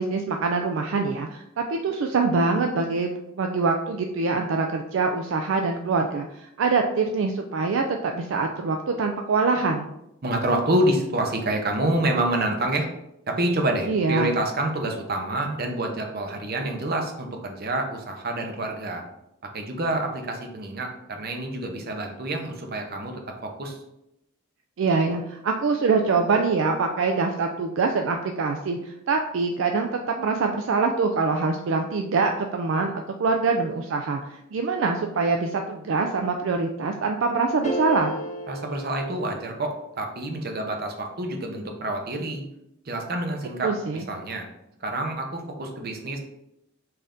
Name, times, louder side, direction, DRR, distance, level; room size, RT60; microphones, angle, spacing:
voice 1, 0.0-9.9 13.9-14.3 24.8-32.9 33.2-34.2 34.5-38.2 43.6-44.0, right 4 dB, 70° right, 4 dB, 0.4 m, -24 dB
voice 2, 10.2-12.9 13.3-19.0 19.5-23.8 38.5-42.4 42.8-44.5 44.8-46.2, right 1 dB, 50° right, 3 dB, 0.8 m, -27 dB
sound 1, 37.6-39.9, equal, 35° left, 0.6 m, -33 dB
5.5 x 2.7 x 3.6 m, 0.83 s
head